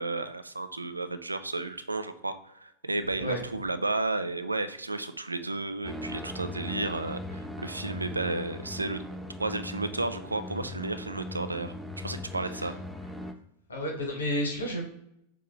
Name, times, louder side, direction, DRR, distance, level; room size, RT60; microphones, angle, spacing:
voice 1, 0.0-9.0 9.4-12.8, right 2 dB, 80° right, 11 dB, 0.4 m, -33 dB
sound 1, 5.8-13.3, left 1 dB, ahead, 0.4 m, -39 dB
voice 2, 13.7-14.8, equal, 70° left, 0 dB, 1.4 m, -31 dB
6.1 x 2.7 x 2.6 m, 0.77 s
figure-of-eight pair, 90°, 0 cm